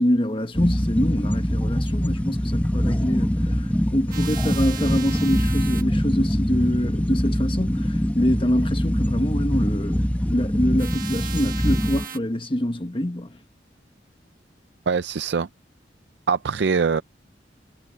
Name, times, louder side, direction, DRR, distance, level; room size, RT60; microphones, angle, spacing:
voice 1, 0.0-10.1 10.3-13.3, equal, 30° left, 1.4 m, -25 dB
sound 1, 0.5-12.1, equal, 10° left, 1.0 m, -23 dB
sound 2, 4.1-5.8 10.8-12.2, right 11 dB, 50° right, 1.6 m, -36 dB
voice 2, 14.9-15.5 16.3-17.0, right 5 dB, 70° right, 0.5 m, -22 dB
head